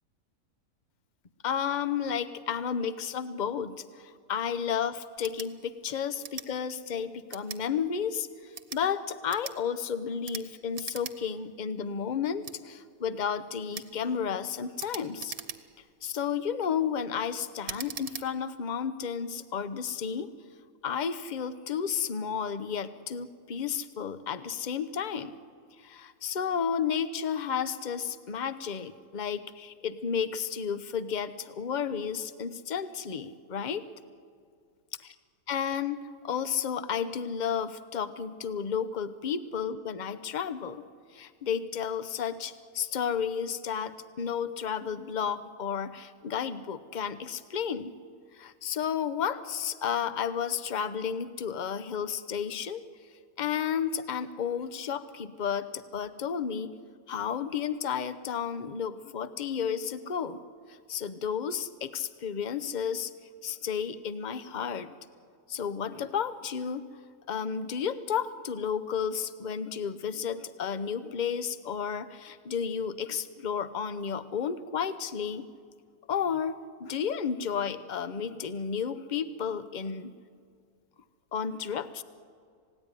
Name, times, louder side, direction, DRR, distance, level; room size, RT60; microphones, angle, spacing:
voice 1, 1.4-15.3 16.0-20.3 20.8-25.3 25.8-33.8 35.5-40.8 41.1-47.9 48.3-52.9 53.4-56.7 57.1-60.4 60.9-63.1 63.4-65.0 65.5-66.8 67.3-75.5 76.1-80.1 81.3-82.0, left 7 dB, 40° left, 13 dB, 0.7 m, -32 dB
sound 1, 5.2-5.5 6.2-6.5 7.3-7.6 8.4-8.8 9.3-9.6 10.2-10.5 10.7-11.2 11.5-11.6 12.4-12.6 13.7-13.9 14.8-15.9 16.4-16.7 17.6-18.3, right 7 dB, 70° right, 1.5 m, -40 dB
26.5 x 17.0 x 9.9 m, 2.1 s
omnidirectional pair, 1.7 m